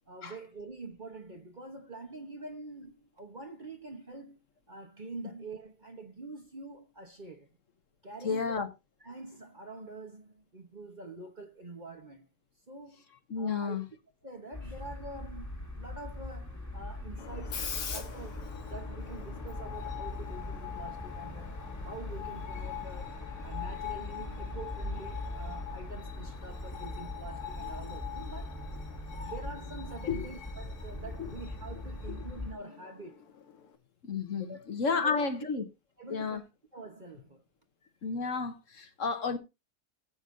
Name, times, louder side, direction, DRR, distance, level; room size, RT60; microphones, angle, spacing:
voice 1, 0.1-4.4 4.7-7.5 8.0-8.6 9.0-12.3 12.7-13.0 13.4-13.8 14.2-23.1 23.4-28.6 29.2-33.2 34.4-35.2 36.0-36.4 36.7-37.4, right 2 dB, 35° right, 1.1 m, -45 dB
voice 2, 8.2-8.7 13.3-13.8 30.1-30.3 31.2-31.3 34.0-35.6 36.1-36.4 38.0-39.4, left 5 dB, 55° left, 1.3 m, -31 dB
sound 1, 14.5-32.5, left 1 dB, 10° left, 1.6 m, -41 dB
Screech, 17.2-33.8, left 9 dB, 80° left, 1.9 m, -44 dB
14.5 x 8.0 x 2.6 m
omnidirectional pair, 1.7 m